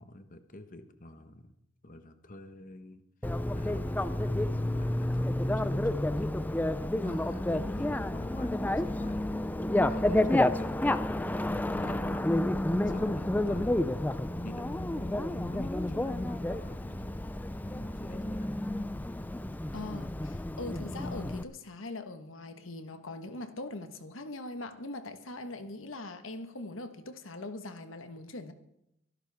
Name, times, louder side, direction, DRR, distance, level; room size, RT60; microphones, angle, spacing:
voice 1, 0.0-1.5 1.8-3.0 3.5-6.3 7.0-9.4 9.9-12.3 12.9-13.8 14.4-17.1 17.7-18.5, left 1 dB, 45° left, 1.2 m, -47 dB
Bicycle, 3.2-21.4, left 1 dB, 10° left, 0.4 m, -30 dB
voice 2, 19.7-28.5, left 2 dB, 80° left, 1.4 m, -41 dB
24.0 x 11.5 x 3.5 m
head